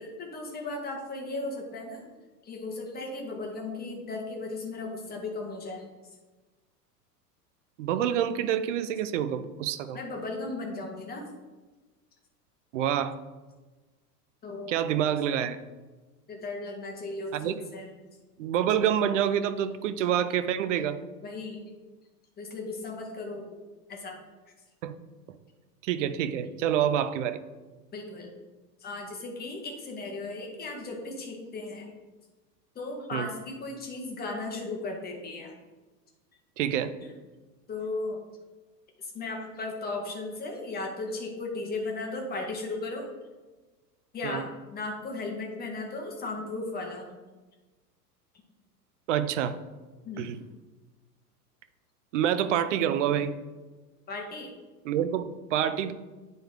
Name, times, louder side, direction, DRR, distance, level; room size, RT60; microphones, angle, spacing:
voice 1, 0.0-2.0 2.4-5.9 9.9-11.2 14.4-14.7 16.3-17.9 21.2-21.6 22.4-23.4 23.9-24.1 27.9-28.3 28.8-31.9 32.7-35.5 37.0-37.1 37.7-38.2 39.0-43.1 44.1-47.1 50.0-50.3 54.1-54.5, left 2 dB, 20° left, 1 dB, 1.4 m, -36 dB
voice 2, 7.8-10.0 12.7-13.2 14.7-15.6 17.3-17.6 18.4-21.0 24.8-25.0 25.8-27.4 33.1-33.3 36.6-36.9 44.2-44.5 49.1-49.6 50.2-50.4 52.1-53.4 54.8-55.9, right 9 dB, 50° right, 12 dB, 0.6 m, -27 dB
8.8 x 3.9 x 3.6 m, 1.2 s
figure-of-eight pair, 95°, 49 cm